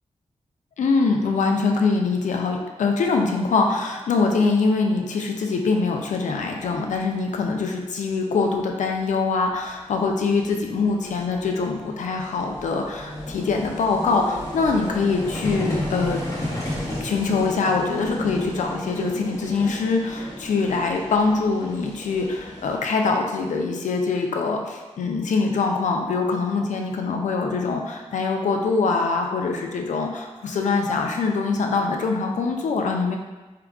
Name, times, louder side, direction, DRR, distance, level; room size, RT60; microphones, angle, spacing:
voice 1, 0.8-16.2 17.0-33.2, left 4 dB, 80° left, 2 dB, 0.4 m, -23 dB
Vehicle, 6.9-7.1 9.1-9.2 9.4-22.8, left 1 dB, 25° left, 0.9 m, -33 dB
4.6 x 2.2 x 2.4 m, 1.2 s
cardioid pair, 70°, 12 cm